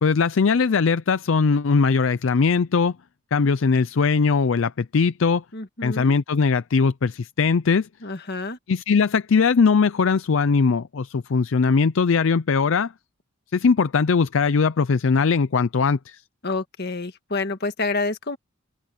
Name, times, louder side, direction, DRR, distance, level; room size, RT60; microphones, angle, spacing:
voice 1, 0.0-2.9 3.3-5.4 5.8-7.9 8.7-12.9 13.5-16.2, left 5 dB, 65° left, 0.5 m, -20 dB
voice 2, 5.5-6.1 8.0-8.6 16.4-18.4, left 3 dB, 50° left, 1.7 m, -28 dB
open air
head